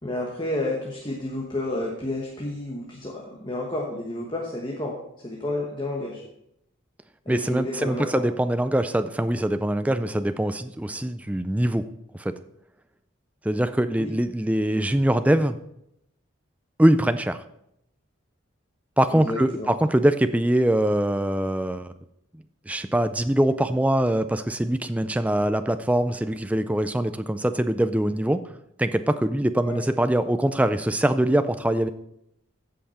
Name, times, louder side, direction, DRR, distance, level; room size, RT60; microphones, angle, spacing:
voice 1, 0.0-6.2 7.3-8.2 14.0-14.1 19.1-19.7 29.6-29.8, left 1 dB, 25° left, -1 dB, 1.2 m, -31 dB
voice 2, 7.3-11.8 12.2-12.3 13.4-15.6 16.8-17.4 19.0-21.9 22.7-28.4 28.8-31.9, right 1 dB, 5° right, 10 dB, 0.4 m, -23 dB
15.0 x 5.7 x 4.3 m, 0.78 s
head